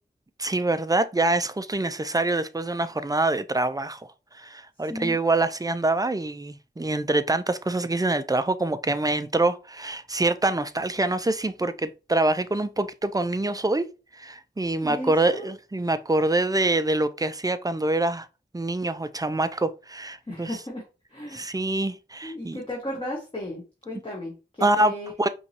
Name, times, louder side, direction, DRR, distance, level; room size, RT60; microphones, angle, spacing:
voice 1, 0.4-4.1 4.3-13.9 14.1-18.3 18.5-20.6 21.3-22.6 24.6-24.9 25.2-25.3, right 2 dB, 20° right, 0.4 m, -25 dB
voice 2, 4.8-5.2 14.8-15.5 20.3-20.8 21.1-21.5 22.2-25.1, left 1 dB, 25° left, 1.5 m, -35 dB
5.1 x 3.1 x 2.8 m
wide cardioid pair, 70°, 19 cm